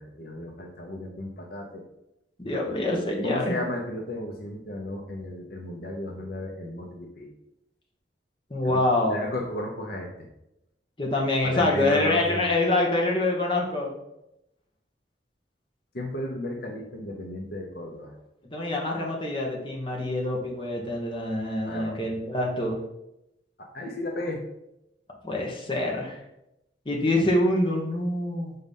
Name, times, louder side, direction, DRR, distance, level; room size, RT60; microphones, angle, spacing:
voice 1, 0.0-1.8 3.2-7.3 8.6-8.8 9.1-10.3 11.4-12.4 15.9-18.1 21.6-22.0 23.7-24.4, left 1 dB, 55° left, 0 dB, 0.9 m, -34 dB
voice 2, 2.4-3.5 8.5-9.3 11.0-13.9 18.5-22.8 25.2-26.2 26.8-28.6, left 1 dB, 30° left, -1 dB, 1.2 m, -25 dB
5.4 x 3.9 x 5.4 m, 0.85 s
head